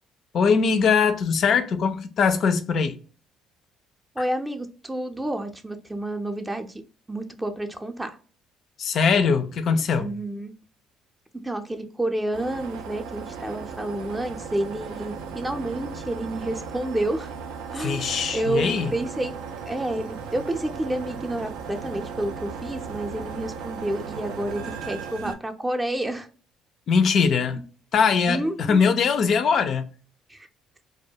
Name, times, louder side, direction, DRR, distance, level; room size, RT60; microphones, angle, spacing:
voice 1, 0.3-3.0 8.8-10.1 17.8-19.0 26.9-27.6 27.9-29.9, left 5 dB, 60° left, 0.3 m, -21 dB
voice 2, 4.2-6.8 7.1-8.2 10.0-10.5 11.4-17.3 17.7-19.3 19.7-26.3 28.3-28.9 30.3-30.5, right 1 dB, 15° right, 0.5 m, -29 dB
sound 1, 12.3-25.3, right 5 dB, 75° right, 0.3 m, -36 dB
2.2 x 2.1 x 2.7 m
hypercardioid pair, 65°, 0 cm